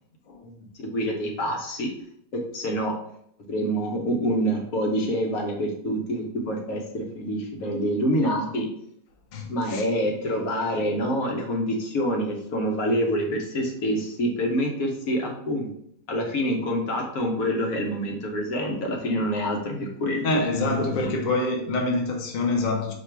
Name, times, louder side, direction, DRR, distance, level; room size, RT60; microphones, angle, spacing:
voice 1, 0.8-1.9 2.3-2.9 3.5-8.7 9.5-15.7 16.1-21.1, equal, 65° left, 1.3 m, -26 dB
voice 2, 9.3-9.8 20.2-22.9, left 2 dB, 45° left, 0.6 m, -26 dB
4.9 x 2.3 x 4.4 m
omnidirectional pair, 1.6 m